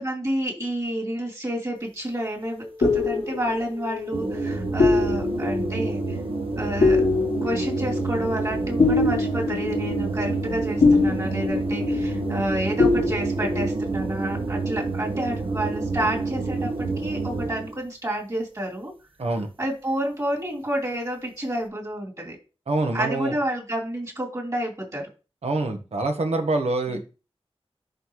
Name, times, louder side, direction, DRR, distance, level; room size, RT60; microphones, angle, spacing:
voice 1, 0.0-6.2 6.6-7.0 7.4-16.7 17.0-18.9 19.6-22.4 22.9-25.1 26.9-27.0, right 1 dB, 35° right, -2 dB, 3.0 m, -29 dB
sound 1, 2.4-12.5 12.8-13.7, left 3 dB, 85° left, 1.1 m, -24 dB
sound 2, 4.1-17.8, right 3 dB, 60° right, 0.9 m, -28 dB
voice 2, 22.7-23.4 25.4-27.0, right 2 dB, 80° right, 5 dB, 1.3 m, -25 dB
10.5 x 4.0 x 3.1 m, 0.33 s
wide cardioid pair, 70°, 10 cm